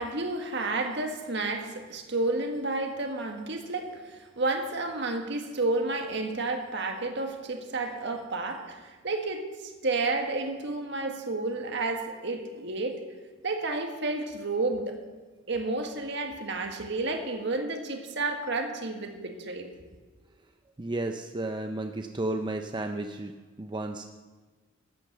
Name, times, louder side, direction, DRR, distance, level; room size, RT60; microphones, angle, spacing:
voice 1, 0.0-13.0 13.4-15.0 15.5-19.7, right 2 dB, 60° right, 4 dB, 1.7 m, -31 dB
voice 2, 20.8-23.3 23.6-24.2, right 2 dB, 20° right, 5 dB, 0.5 m, -33 dB
13.5 x 9.6 x 6.7 m, 1.3 s
head